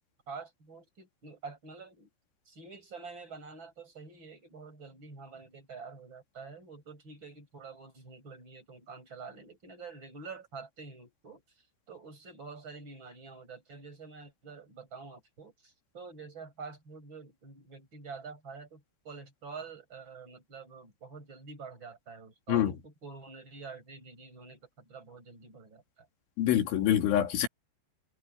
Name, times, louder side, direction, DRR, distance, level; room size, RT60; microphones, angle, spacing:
voice 1, 0.3-2.1 2.4-26.1, right 4 dB, 25° right, 8.5 m, -47 dB
voice 2, 26.4-27.5, left 11 dB, 90° left, 4.9 m, -25 dB
omnidirectional pair, 5.3 m